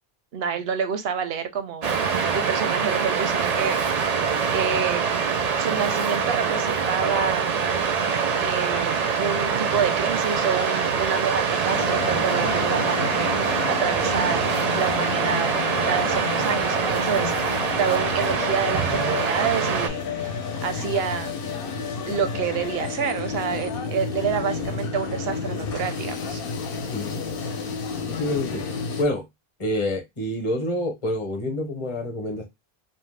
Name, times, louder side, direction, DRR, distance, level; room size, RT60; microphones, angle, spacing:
voice 1, 0.3-4.2 4.5-5.1 5.6-7.6 8.4-15.6 15.8-21.4 22.1-26.4, right 6 dB, 80° right, 0.8 m, -28 dB
Waves surf, 1.8-19.9, right 6 dB, 55° right, 0.5 m, -24 dB
sound 1, 11.7-29.0, left 5 dB, 70° left, 0.7 m, -31 dB
voice 2, 26.9-27.2 28.2-28.6 29.0-29.2 29.6-32.4, left 1 dB, 35° left, 0.8 m, -27 dB
2.6 x 2.1 x 3.2 m
omnidirectional pair, 1.0 m